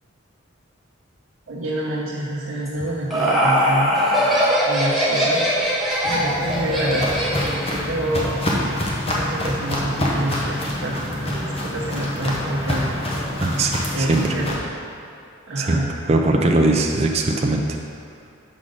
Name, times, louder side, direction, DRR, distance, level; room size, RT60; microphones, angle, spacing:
voice 1, 1.5-4.0 4.7-5.5 6.0-7.1 7.3-8.3 9.1-13.0 13.2-13.3 13.9-14.6 15.5-15.9, right 1 dB, 65° right, -6 dB, 0.7 m, -27 dB
Laughter, 2.7-7.8, equal, ahead, 1.0 m, -20 dB
Walk footsteps, 6.1-14.5, left 1 dB, 25° left, 0.8 m, -26 dB
voice 2, 13.4-14.2 15.6-15.8 16.1-17.6, right 2 dB, 30° right, 2 dB, 0.4 m, -20 dB
6.4 x 4.0 x 5.1 m, 2.5 s
head